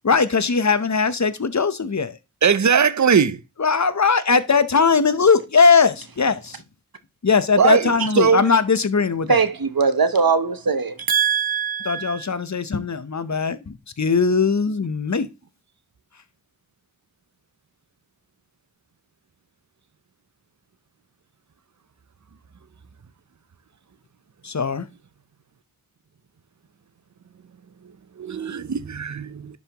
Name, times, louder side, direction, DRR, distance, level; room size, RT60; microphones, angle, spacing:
voice 1, 0.0-2.2 3.6-6.6 7.2-9.4 11.9-15.3 24.4-24.8, left 5 dB, 50° left, 0.8 m, -19 dB
voice 2, 2.4-3.4 7.6-8.5 28.2-29.6, right 6 dB, 50° right, 0.6 m, -19 dB
voice 3, 9.3-12.3, right 5 dB, 75° right, 0.9 m, -21 dB
10.5 x 5.4 x 2.9 m
wide cardioid pair, 40°, 36 cm